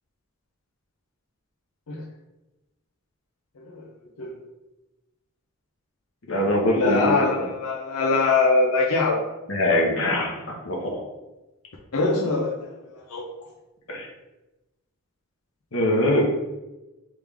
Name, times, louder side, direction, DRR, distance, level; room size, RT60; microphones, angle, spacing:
voice 1, 3.6-3.9 4.2-4.4 6.7-9.2 11.9-12.7 13.1-13.2, left 3 dB, 85° left, -3 dB, 0.6 m, -23 dB
voice 2, 6.3-7.4 9.5-10.3 10.6-11.0 13.9-14.1 15.7-16.3, left 1 dB, 60° left, -1 dB, 1.0 m, -22 dB
3.4 x 3.2 x 3.5 m, 1.0 s
head